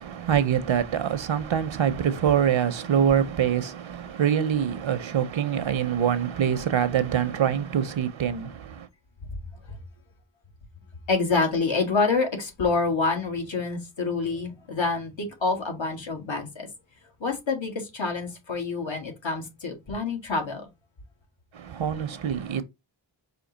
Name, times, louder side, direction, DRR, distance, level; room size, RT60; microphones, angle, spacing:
voice 1, 0.0-8.5 21.7-22.6, right 8 dB, 80° right, 0.6 m, -24 dB
voice 2, 11.1-16.7 17.2-20.7, left 4 dB, 75° left, 1.6 m, -27 dB
5.1 x 2.7 x 3.8 m
wide cardioid pair, 90°, 46 cm